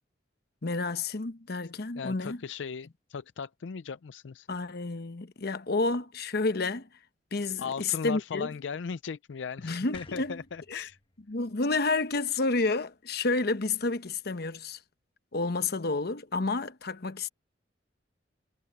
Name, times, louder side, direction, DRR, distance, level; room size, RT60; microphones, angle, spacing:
voice 1, 0.6-2.4 4.5-6.9 7.3-8.5 9.6-10.4 10.7-10.9 11.3-14.8 15.3-17.3, left 3 dB, 60° left, 1.0 m, -30 dB
voice 2, 2.0-4.5 7.6-11.0, left 6 dB, 85° left, 0.5 m, -37 dB
sound 1, 9.9-13.1, left 3 dB, 30° left, 1.4 m, -55 dB
head